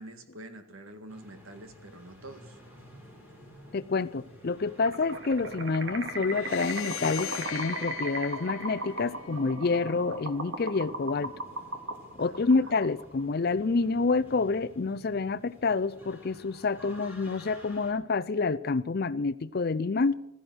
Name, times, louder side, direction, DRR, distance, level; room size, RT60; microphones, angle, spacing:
voice 1, 0.0-2.6 12.2-12.8, right 1 dB, 75° right, 8 dB, 1.9 m, -47 dB
sound 1, 1.1-17.9, equal, 10° right, 5.7 m, -52 dB
voice 2, 3.7-11.3 12.2-20.2, left 4 dB, 45° left, 14 dB, 0.5 m, -28 dB
sound 2, 4.8-13.2, right 1 dB, 60° right, 2.2 m, -37 dB
sound 3, 6.3-9.6, left 11 dB, 75° left, 0.8 m, -40 dB
16.0 x 13.5 x 6.2 m, 0.80 s
head